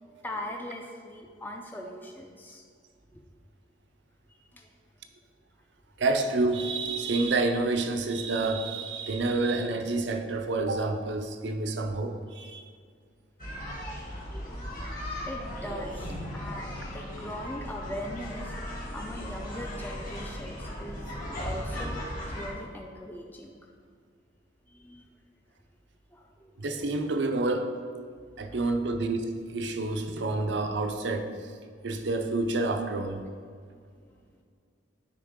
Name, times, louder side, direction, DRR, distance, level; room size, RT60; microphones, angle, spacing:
voice 1, 0.0-2.6 3.1-3.2 4.3-4.7 15.3-18.5 18.9-21.1 21.3-23.6 24.7-25.0 26.1-26.5, left 1 dB, 10° left, 1 dB, 0.4 m, -40 dB
voice 2, 6.0-12.6 26.6-27.7 28.4-31.3 31.8-33.2, right 2 dB, 70° right, 7 dB, 0.5 m, -28 dB
sound 1, 13.4-22.5, equal, 50° left, 1.7 m, -37 dB
9.9 x 3.4 x 3.7 m, 2.1 s
head